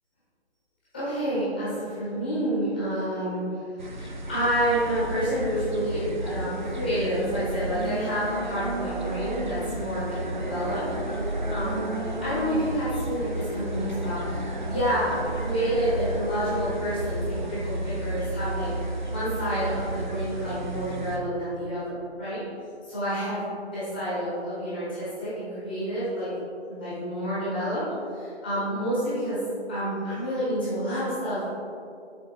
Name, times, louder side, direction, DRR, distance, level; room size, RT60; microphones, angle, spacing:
voice 1, 0.9-3.7 4.0-10.8 11.5-11.8 12.2-18.7 19.1-22.4 22.9-26.3 26.7-27.8 28.1-29.4 29.7-31.5, equal, 10° left, -12 dB, 1.1 m, -29 dB
sound 1, 3.8-21.2, right 1 dB, 45° right, 0.7 m, -32 dB
7.0 x 4.8 x 3.6 m, 2.4 s
figure-of-eight pair, 165°, 34 cm